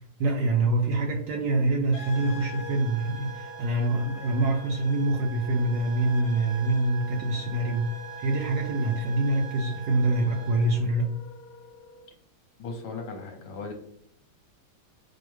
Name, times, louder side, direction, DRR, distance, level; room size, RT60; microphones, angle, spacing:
voice 1, 0.2-7.9 8.2-11.1, right 2 dB, 75° right, 2 dB, 1.0 m, -25 dB
sound 1, 1.9-10.8, right 3 dB, 50° left, 0.8 m, -43 dB
Wind instrument woodwind instrument, 2.0-12.1, left 2 dB, 90° left, 0.7 m, -48 dB
voice 2, 12.6-13.7, left 4 dB, 70° left, 2 dB, 1.3 m, -37 dB
4.7 x 2.1 x 3.1 m, 0.72 s
omnidirectional pair, 2.1 m